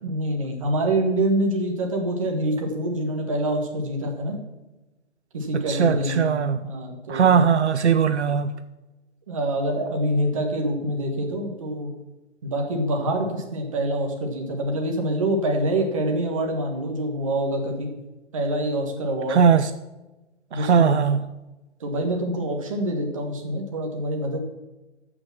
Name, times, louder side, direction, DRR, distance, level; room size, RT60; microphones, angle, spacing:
voice 1, 0.0-4.4 5.3-7.4 9.3-11.9 12.4-17.9 18.3-19.4 20.5-20.9 21.8-24.4, right 1 dB, 30° right, 1.6 m, -26 dB
voice 2, 5.7-6.6 7.1-8.5 19.3-19.7 20.5-21.2, right 6 dB, 70° right, 0.7 m, -19 dB
13.5 x 6.1 x 6.1 m
hypercardioid pair, 175°, 35 cm